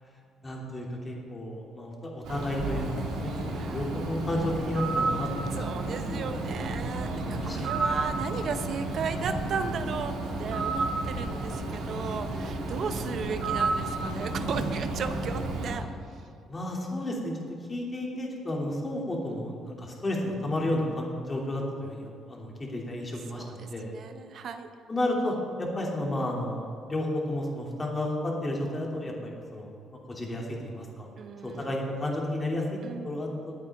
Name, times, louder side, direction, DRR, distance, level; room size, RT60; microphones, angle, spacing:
voice 1, 0.4-5.5 6.1-6.4 7.2-7.9 16.5-17.3 17.7-23.9 24.9-29.7 30.1-31.1 31.4-32.6 33.0-33.5, left 1 dB, 25° left, -2 dB, 2.8 m, -32 dB
Bird, 2.2-15.8, right 2 dB, 85° right, 2.2 m, -31 dB
voice 2, 5.5-7.1 7.5-15.8 23.4-24.7 31.2-31.7 32.8-33.1, right 5 dB, 55° right, 8 dB, 1.0 m, -35 dB
20.5 x 8.8 x 3.6 m, 2.4 s
cardioid pair, 110°, 0 cm